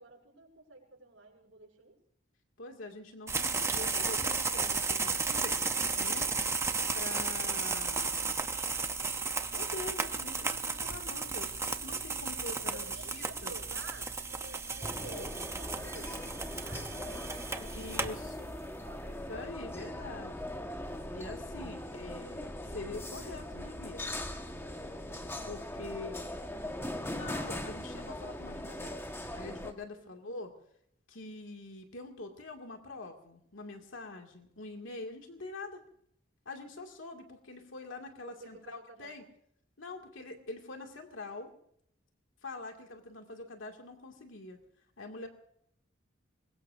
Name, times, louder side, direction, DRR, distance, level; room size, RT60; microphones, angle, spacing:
voice 1, 0.0-2.0 12.5-18.2 18.8-19.2 29.9-30.1 38.2-39.2, right 2 dB, 90° right, -1 dB, 7.0 m, -52 dB
voice 2, 2.6-5.7 6.0-6.3 6.9-8.2 9.5-13.6 17.6-18.5 19.0-20.5 21.1-24.2 25.4-26.4 27.0-29.1 29.3-30.5 31.1-35.8 36.5-39.2 39.8-41.5 42.4-44.6 45.0-45.3, left 2 dB, 80° left, 3 dB, 2.2 m, -45 dB
sound 1, 3.3-18.7, right 4 dB, 15° right, 0.7 m, -34 dB
sound 2, 14.8-29.7, left 1 dB, 15° left, 1.3 m, -40 dB
25.0 x 21.5 x 2.6 m, 0.69 s
head